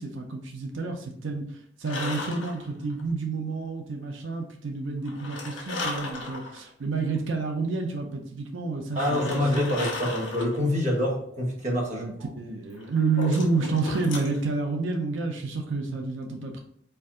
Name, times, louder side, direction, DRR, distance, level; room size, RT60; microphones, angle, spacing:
voice 1, 0.0-9.4 11.9-16.6, right 3 dB, 85° right, 3 dB, 0.6 m, -29 dB
sound 1, 1.8-3.0 5.1-6.6 7.2-7.3 8.9-10.6 12.7-14.4, left 2 dB, 80° left, 1.2 m, -35 dB
voice 2, 8.9-12.3, left 1 dB, 40° right, -1 dB, 1.2 m, -26 dB
4.5 x 2.6 x 3.7 m, 0.66 s
head